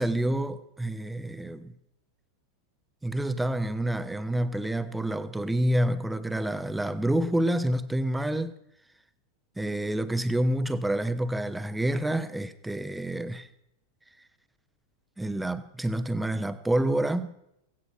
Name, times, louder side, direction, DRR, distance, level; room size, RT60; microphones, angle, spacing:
voice 1, 0.0-1.7 3.0-8.5 9.6-13.5 15.2-17.3, right 1 dB, 5° right, 0.9 m, -28 dB
17.0 x 16.5 x 4.4 m
figure-of-eight pair, 90°, 0 cm